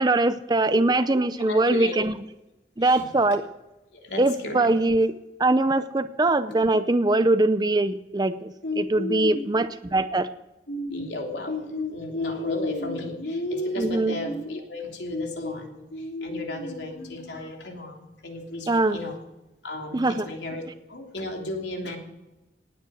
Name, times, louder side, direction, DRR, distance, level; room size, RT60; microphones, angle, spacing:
voice 1, 0.0-2.1 2.8-3.5 4.2-5.1 5.4-10.3 13.8-14.2 18.7-19.0 19.9-20.3, right 2 dB, 25° right, 11 dB, 0.6 m, -22 dB
voice 2, 0.7-1.1 1.4-2.0 2.8-3.0 3.9-4.7 6.5-6.6 8.6-9.5 10.7-19.2 19.6-20.6 20.9-22.0, left 2 dB, 80° left, 2 dB, 3.2 m, -32 dB
18.5 x 9.4 x 6.4 m, 1.0 s
head